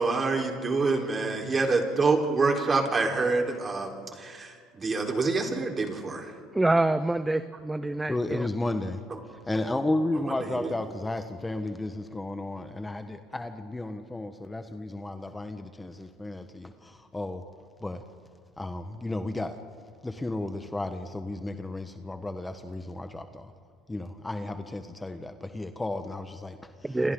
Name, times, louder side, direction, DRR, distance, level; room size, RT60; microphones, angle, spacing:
voice 1, 0.0-3.9 4.2-6.3 10.3-10.7, right 3 dB, 30° right, 1 dB, 4.2 m, -26 dB
voice 2, 6.5-8.5 26.8-27.1, right 2 dB, 10° right, 12 dB, 0.8 m, -26 dB
voice 3, 8.1-9.0 9.3-17.4 17.8-18.0 18.6-19.6 20.0-23.5 23.9-27.1, left 2 dB, 15° left, 7 dB, 1.4 m, -33 dB
29.0 x 26.0 x 3.9 m, 2.1 s
supercardioid pair, 85°, 0 cm